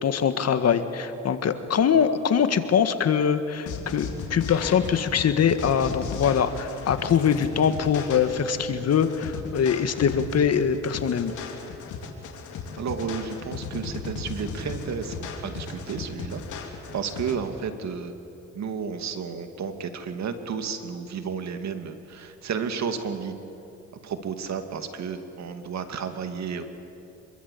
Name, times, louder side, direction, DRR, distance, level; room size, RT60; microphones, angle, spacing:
voice 1, 0.0-11.3, left 7 dB, 55° left, 10 dB, 1.8 m, -23 dB
sound 1, 3.7-17.3, left 5 dB, 75° left, 3.6 m, -36 dB
voice 2, 12.8-16.4 16.9-18.1 18.5-23.3 24.0-26.6, right 6 dB, 65° right, 7 dB, 2.5 m, -32 dB
26.5 x 23.0 x 8.6 m, 2.7 s
cardioid pair, 90°, 30 cm